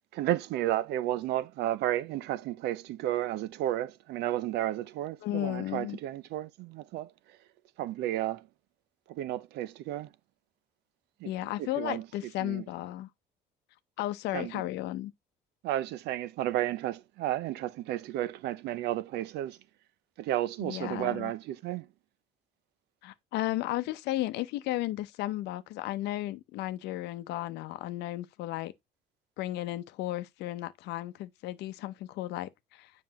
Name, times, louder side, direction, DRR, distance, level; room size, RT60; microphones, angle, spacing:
voice 1, 0.1-7.1 7.8-8.5 9.1-10.1 11.2-11.3 11.6-12.1 12.4-12.6 14.3-14.6 15.6-19.6 20.2-21.9, right 14 dB, 80° right, 0.6 m, -32 dB
voice 2, 5.2-6.0 11.2-13.1 14.0-15.1 20.6-21.3 23.0-28.7 29.4-32.9, left 15 dB, 85° left, 0.7 m, -34 dB
7.5 x 5.3 x 2.9 m
cardioid pair, 110°, 17 cm